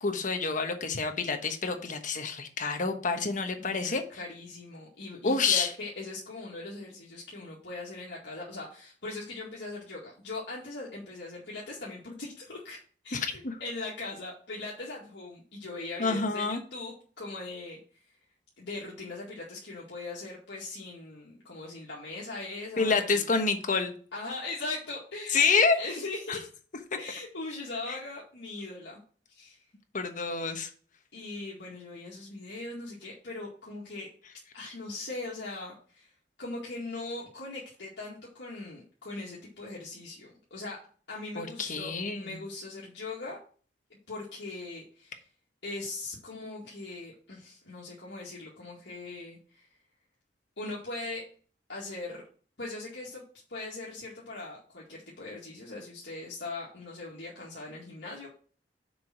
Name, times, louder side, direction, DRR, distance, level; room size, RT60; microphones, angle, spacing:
voice 1, 0.0-4.0 5.2-5.7 13.1-13.5 16.0-16.6 22.8-23.9 25.3-25.8 29.9-30.7 41.4-42.4, left 4 dB, 45° left, 6 dB, 1.1 m, -28 dB
voice 2, 3.6-12.8 13.0-17.8 18.6-23.3 24.1-25.4 25.8-26.5 27.0-29.0 29.3-29.6 31.1-34.1 34.5-36.1 36.4-40.8 41.1-43.4 44.1-45.2 45.6-49.7 50.6-51.2 51.7-52.2 52.6-53.2 53.5-58.3, left 2 dB, 70° left, -5 dB, 2.1 m, -40 dB
6.9 x 4.9 x 6.0 m, 0.42 s
head